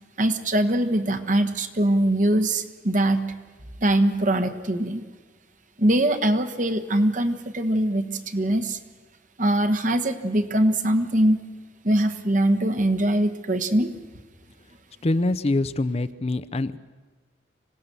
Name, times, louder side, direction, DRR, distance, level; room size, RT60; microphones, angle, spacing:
voice 1, 0.2-3.2 3.8-5.0 5.8-8.8 9.4-11.4 11.8-14.0, right 1 dB, 45° right, 9 dB, 1.3 m, -22 dB
voice 2, 15.0-16.8, left 2 dB, 35° left, 13 dB, 0.6 m, -24 dB
25.5 x 17.5 x 6.8 m, 1.4 s
head